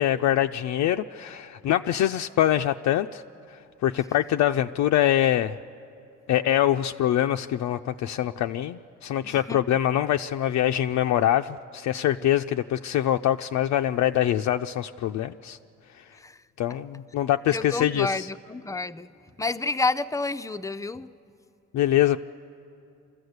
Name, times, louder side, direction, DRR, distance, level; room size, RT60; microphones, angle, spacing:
voice 1, 0.0-3.2 3.8-5.6 6.3-15.6 16.6-18.3 21.7-22.2, left 12 dB, 70° left, 6 dB, 0.5 m, -24 dB
voice 2, 9.2-9.6 16.1-16.4 17.5-19.1 19.4-21.1, left 3 dB, 10° left, 12 dB, 0.5 m, -29 dB
26.5 x 14.0 x 8.0 m, 2.6 s
cardioid pair, 90°, 30 cm